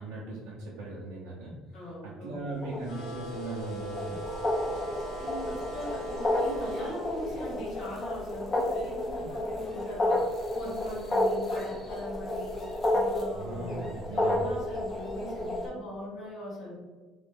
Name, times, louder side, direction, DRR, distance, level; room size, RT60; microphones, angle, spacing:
voice 1, 0.0-1.5 2.0-4.2 9.2-9.3 13.3-14.6, right 2 dB, 80° right, -5 dB, 0.6 m, -38 dB
voice 2, 1.7-2.4 5.1-16.7, left 1 dB, 50° left, -7 dB, 1.5 m, -40 dB
sound 1, 2.6-15.7, left 1 dB, 20° left, 0.7 m, -31 dB
sound 2, 2.8-7.0, right 3 dB, 70° left, 0.9 m, -42 dB
3.0 x 2.5 x 3.6 m, 1.3 s
cardioid pair, 165°, 0 cm